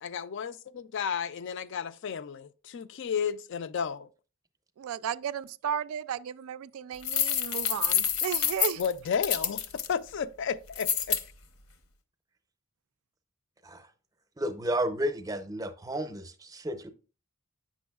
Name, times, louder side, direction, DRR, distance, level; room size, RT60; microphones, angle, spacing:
voice 1, 0.0-0.5 0.9-4.1 8.8-11.2, left 7 dB, 55° left, 0.3 m, -32 dB
voice 2, 4.8-8.8, right 8 dB, 75° right, 0.3 m, -34 dB
sound 1, 7.0-9.9 10.7-11.2, left 8 dB, 75° left, 0.8 m, -27 dB
voice 3, 14.4-16.9, right 1 dB, 15° right, 0.6 m, -32 dB
8.4 x 6.2 x 2.3 m
head